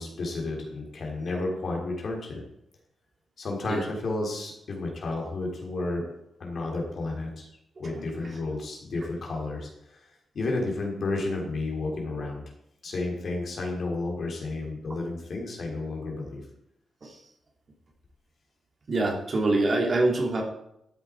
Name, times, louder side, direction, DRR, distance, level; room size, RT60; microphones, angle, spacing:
voice 1, 0.0-2.4 3.4-6.0 6.4-7.5 7.8-10.1 10.3-12.4 12.8-16.4, left 2 dB, 50° left, 0 dB, 3.6 m, -32 dB
voice 2, 18.9-20.4, right 2 dB, 40° right, 0 dB, 2.8 m, -25 dB
13.0 x 7.9 x 4.7 m, 0.78 s
wide cardioid pair, 140°, 0 cm